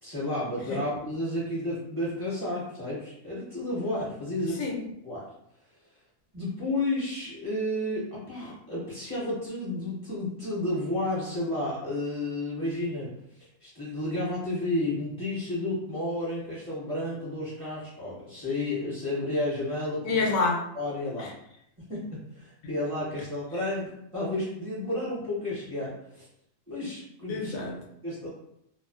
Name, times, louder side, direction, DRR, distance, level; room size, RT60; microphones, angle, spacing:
voice 1, 0.0-4.8 5.0-5.3 6.3-13.1 13.6-20.2 20.7-21.3 21.9-26.3 26.7-27.5 28.0-28.3, left 1 dB, 25° right, -10 dB, 0.8 m, -31 dB
voice 2, 20.0-20.6 21.2-21.3 27.3-27.8, left 3 dB, 80° left, 0 dB, 1.0 m, -27 dB
2.4 x 2.2 x 2.3 m, 0.77 s
omnidirectional pair, 1.5 m